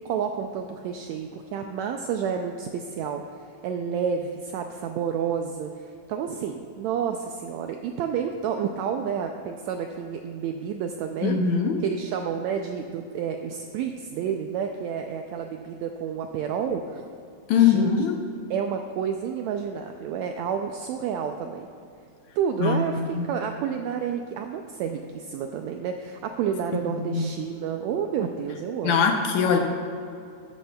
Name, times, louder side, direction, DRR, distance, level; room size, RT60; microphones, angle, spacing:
voice 1, 0.0-3.2 3.6-11.4 11.8-17.0 17.5-17.9 18.5-21.7 22.4-29.1, right 7 dB, 85° right, 5 dB, 1.6 m, -30 dB
voice 2, 11.2-11.8 17.5-18.2 22.6-22.8 23.2-23.3 27.0-27.2 28.8-29.6, left 7 dB, 75° left, 3 dB, 1.9 m, -21 dB
14.0 x 11.5 x 2.3 m, 2.5 s
omnidirectional pair, 3.7 m